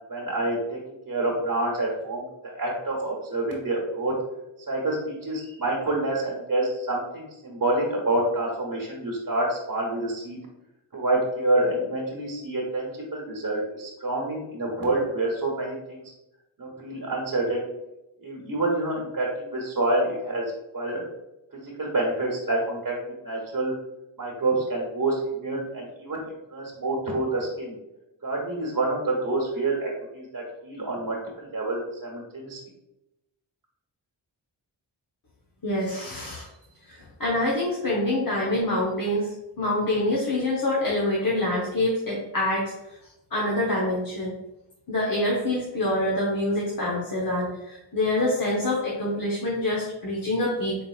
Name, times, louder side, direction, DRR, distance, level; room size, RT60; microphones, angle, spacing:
voice 1, 0.1-0.8 1.1-4.1 4.7-10.4 10.9-16.0 16.6-17.6 18.2-20.4 20.7-21.0 21.5-22.9 23.2-23.7 24.2-26.2 26.5-27.7 28.2-32.6, right 2 dB, 45° right, -3 dB, 1.2 m, -27 dB
voice 2, 35.6-36.5 36.9-42.7 43.3-44.3 44.9-50.8, left 1 dB, 45° left, -4 dB, 1.1 m, -26 dB
4.4 x 3.3 x 2.4 m, 0.93 s
cardioid pair, 50°, 48 cm